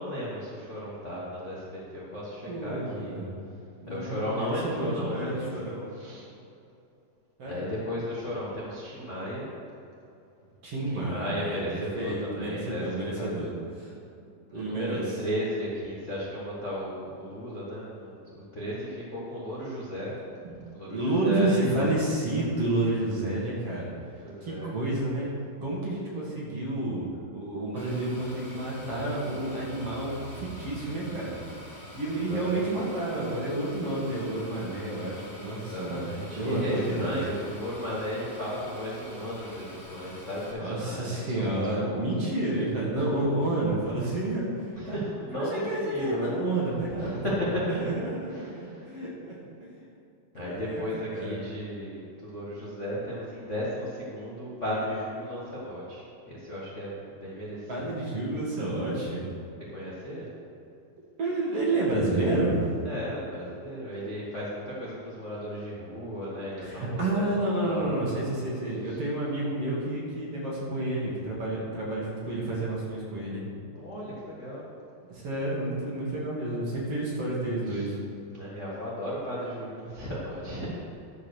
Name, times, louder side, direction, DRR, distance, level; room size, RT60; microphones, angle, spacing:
voice 1, 0.0-3.2 3.9-5.5 5.9-6.2 7.4-9.5 10.9-13.3 14.5-18.2 18.5-20.2 20.7-21.9 22.1-22.5 24.2-24.7 32.1-32.8 35.3-42.0 44.8-46.3 47.0-47.7 48.3-48.9 50.3-57.9 59.7-60.3 62.8-68.0 68.8-69.0 73.8-74.6 77.7-77.9 78.3-80.9, equal, 55° left, -7 dB, 0.8 m, -35 dB
voice 2, 2.5-3.4 3.8-5.9 7.4-7.8 10.6-13.5 13.8-13.9 14.5-15.1 20.4-20.5 20.9-23.9 24.4-25.3 25.6-27.0 27.3-31.4 32.0-36.1 36.3-37.1 40.6-44.5 44.9-45.0 45.3-49.7 50.4-50.8 51.1-51.3 57.7-59.2 61.2-62.7 66.6-73.4 75.1-77.9, right 2 dB, 45° right, -5 dB, 2.6 m, -30 dB
sound 1, 27.8-40.5, equal, ahead, 1.9 m, -46 dB
12.5 x 5.3 x 6.5 m, 2.7 s
omnidirectional pair, 4.1 m